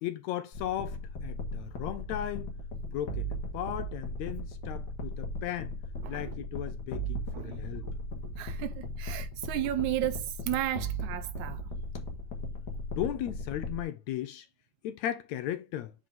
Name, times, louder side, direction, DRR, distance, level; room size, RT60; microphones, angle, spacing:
voice 1, 0.0-2.5 2.9-5.7 6.1-7.9 13.0-14.5 14.8-15.9, left 12 dB, 80° left, 1.8 m, -36 dB
sound 1, 0.5-13.8, equal, 45° left, 1.6 m, -37 dB
voice 2, 6.0-6.4 7.3-7.9 8.4-11.6, right 14 dB, 80° right, 1.8 m, -34 dB
7.6 x 4.7 x 3.5 m
omnidirectional pair, 3.6 m